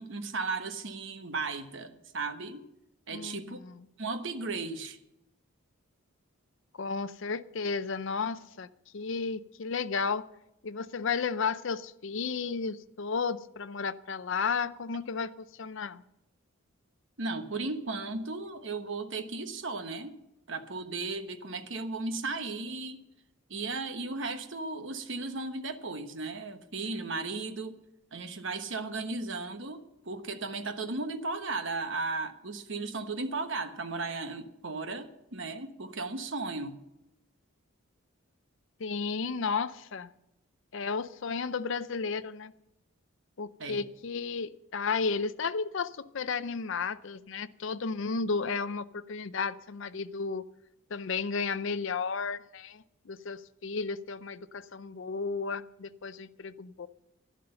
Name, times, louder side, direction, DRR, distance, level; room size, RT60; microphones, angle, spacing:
voice 1, 0.0-2.6 3.1-3.6 4.0-5.0 17.2-20.1 20.5-23.0 23.5-27.8 28.1-36.8 43.6-43.8, right 3 dB, 60° right, 1.2 m, -35 dB
voice 2, 3.1-3.8 6.8-8.7 8.9-10.3 10.6-16.0 38.8-40.1 40.7-42.5 43.4-50.4 50.9-56.9, left 5 dB, 60° left, 0.5 m, -33 dB
12.0 x 11.0 x 6.7 m
head